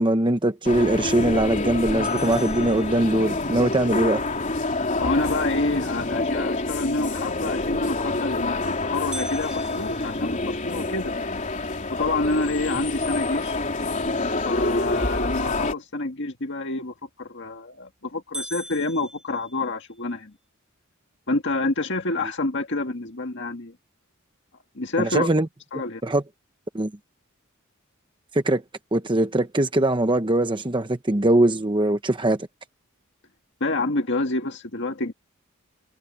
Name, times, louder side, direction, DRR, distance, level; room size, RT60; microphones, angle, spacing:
voice 1, 0.0-4.2 25.0-25.5 26.0-26.2 26.7-26.9 28.3-28.6 28.9-32.4, right 1 dB, 20° right, 0.9 m, -21 dB
sound 1, 0.6-15.7, left 2 dB, 35° left, 3.8 m, -27 dB
sound 2, 2.0-3.6 9.1-11.3 11.8-11.9 12.4-12.5 13.1-13.5 17.1-17.5 17.9-18.0 18.3-20.1, right 1 dB, 5° right, 2.3 m, -41 dB
voice 2, 5.0-11.1 11.9-13.6 14.5-20.3 21.3-23.7 24.8-25.3 25.7-26.0 33.6-35.1, left 2 dB, 55° left, 1.8 m, -28 dB
head